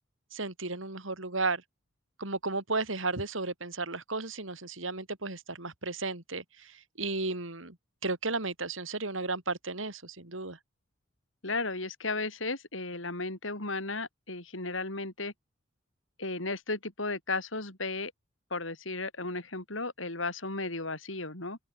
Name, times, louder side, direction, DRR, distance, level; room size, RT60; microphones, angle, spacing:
voice 1, 0.3-1.6 2.2-7.8 8.0-10.6, right 3 dB, 85° right, 4.8 m, -34 dB
voice 2, 11.4-15.3 16.2-18.1 18.5-21.6, left 3 dB, 80° left, 7.7 m, -34 dB
open air
head